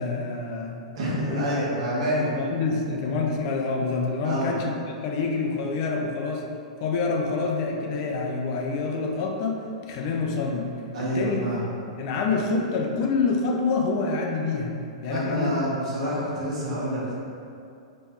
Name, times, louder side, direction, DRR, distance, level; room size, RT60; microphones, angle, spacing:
voice 1, 0.0-0.8 1.3-1.6 2.2-6.4 6.8-9.6 9.9-10.7 11.0-11.6 12.0-14.7 15.0-15.6, left 4 dB, 50° left, 1 dB, 0.5 m, -27 dB
voice 2, 0.9-2.3 4.2-4.5 10.9-11.7 15.1-17.1, right 1 dB, 60° right, -7 dB, 1.4 m, -27 dB
3.8 x 3.1 x 4.3 m, 2.6 s
figure-of-eight pair, 105°, 4 cm